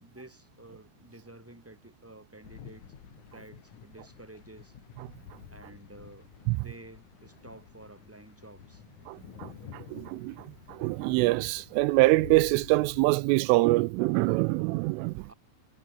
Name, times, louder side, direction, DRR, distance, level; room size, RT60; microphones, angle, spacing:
voice 1, 0.0-2.9 3.3-4.7 5.5-8.8 15.2-15.3, right 1 dB, 5° right, 3.4 m, -51 dB
sound 1, 2.4-13.2, left 8 dB, 50° left, 2.7 m, -49 dB
voice 2, 9.1-15.3, right 22 dB, 85° right, 3.0 m, -25 dB
omnidirectional pair, 5.9 m